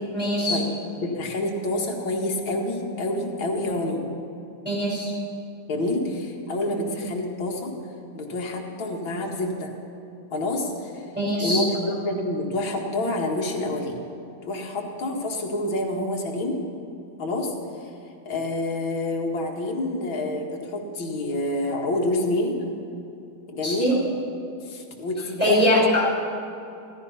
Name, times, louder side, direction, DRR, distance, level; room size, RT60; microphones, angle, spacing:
voice 1, 0.1-0.6 4.6-5.1 6.7-6.9 11.1-11.6 23.6-23.9 25.4-26.0, left 1 dB, 5° right, -6 dB, 4.7 m, -22 dB
voice 2, 1.0-4.0 5.7-7.7 8.1-9.7 10.3-11.1 11.4-14.0 14.5-16.6 17.2-17.5 17.8-17.9 18.3-22.6 23.5-24.0 24.6-25.8, left 1 dB, 80° left, 0 dB, 2.6 m, -28 dB
16.0 x 14.0 x 5.7 m, 2.6 s
omnidirectional pair, 2.2 m